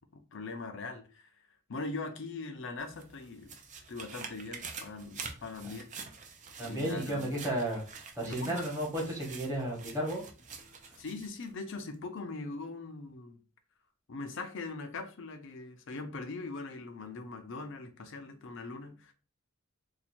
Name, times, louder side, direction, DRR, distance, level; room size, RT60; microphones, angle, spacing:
voice 1, 0.1-1.3 1.7-3.5 3.9-5.9 6.6-7.3 8.2-8.6 11.0-13.4 14.1-19.1, left 3 dB, 65° left, 0.6 m, -41 dB
sound 1, 2.8-11.5 11.9-12.0, right 5 dB, 35° right, 0.6 m, -47 dB
voice 2, 6.6-7.8 8.1-10.2, right 1 dB, 15° right, 1.3 m, -33 dB
2.8 x 2.3 x 4.2 m
head